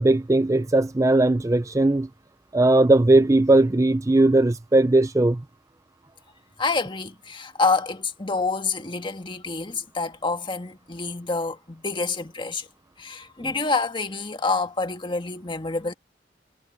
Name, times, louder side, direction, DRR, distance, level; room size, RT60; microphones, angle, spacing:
voice 1, 0.0-2.1 2.5-5.4, right 2 dB, 20° right, 0.5 m, -18 dB
voice 2, 6.6-12.7 13.0-15.9, left 3 dB, 30° left, 1.8 m, -27 dB
head